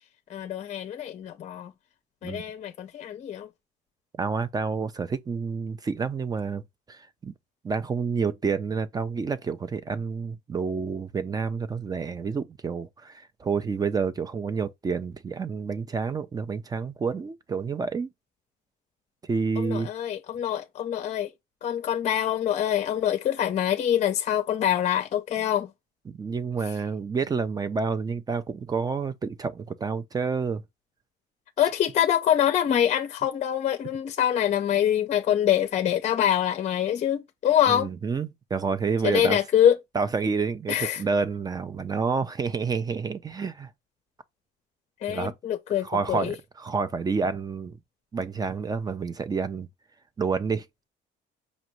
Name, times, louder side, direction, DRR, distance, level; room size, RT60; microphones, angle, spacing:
voice 1, 0.3-1.7 2.2-3.5 19.6-21.3 21.6-25.7 31.6-37.9 39.0-39.8 40.7-41.0 45.0-46.3, left 10 dB, 45° left, 0.5 m, -25 dB
voice 2, 4.2-6.6 6.9-7.3 7.6-18.1 19.3-19.9 26.1-30.6 37.7-39.4 39.9-43.7 45.1-45.3 45.8-47.8 48.1-49.7 50.2-50.7, right 5 dB, 20° right, 0.4 m, -29 dB
5.0 x 2.6 x 2.9 m
cardioid pair, 110°, 17 cm